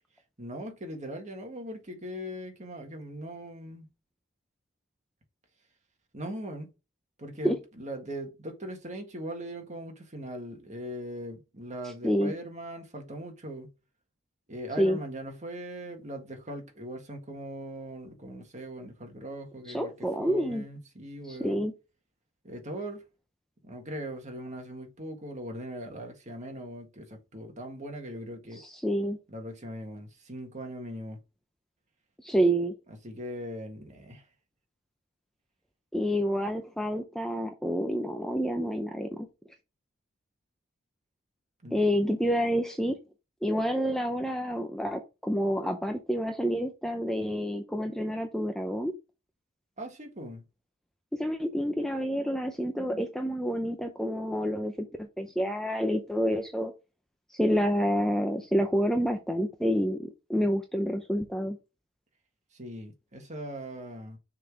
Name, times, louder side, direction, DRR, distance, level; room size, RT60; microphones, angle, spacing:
voice 1, 0.4-3.9 6.1-6.7 7.2-13.7 14.5-21.6 22.4-23.0 23.6-28.6 29.3-31.2 32.9-34.3 41.6-41.8 49.8-50.4 62.5-64.2, equal, 35° right, 1.7 m, -40 dB
voice 2, 19.7-20.6 21.3-21.7 28.6-29.2 32.2-32.7 35.9-39.3 41.7-43.0 43.4-48.9 51.1-56.7 57.3-61.6, equal, ahead, 0.6 m, -28 dB
6.5 x 3.9 x 4.8 m
head